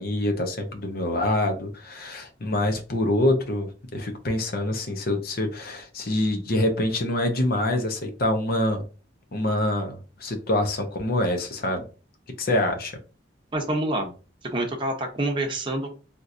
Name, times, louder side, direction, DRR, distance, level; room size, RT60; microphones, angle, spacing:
voice 1, 0.0-8.8 9.3-11.9 12.4-12.9, left 1 dB, 55° left, 0.8 m, -25 dB
voice 2, 13.5-14.1 14.5-16.0, right 1 dB, 25° right, 0.8 m, -27 dB
3.6 x 2.9 x 2.6 m
head